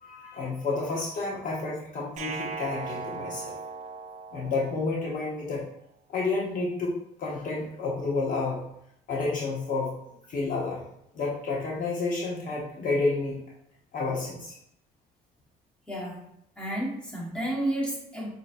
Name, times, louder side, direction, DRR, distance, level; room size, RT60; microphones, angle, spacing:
voice 1, 0.0-3.5 4.3-5.6 6.1-6.9 7.2-8.6 9.1-10.0 10.3-10.8 11.1-13.4 13.9-14.5, left 3 dB, 50° left, -3 dB, 1.0 m, -30 dB
sound 1, 2.2-5.2, right 4 dB, 45° right, 0.4 m, -38 dB
voice 2, 15.9-16.3 16.6-18.3, right 1 dB, 5° left, -5 dB, 1.5 m, -31 dB
5.2 x 2.8 x 2.6 m, 0.76 s
cardioid pair, 110°, 17 cm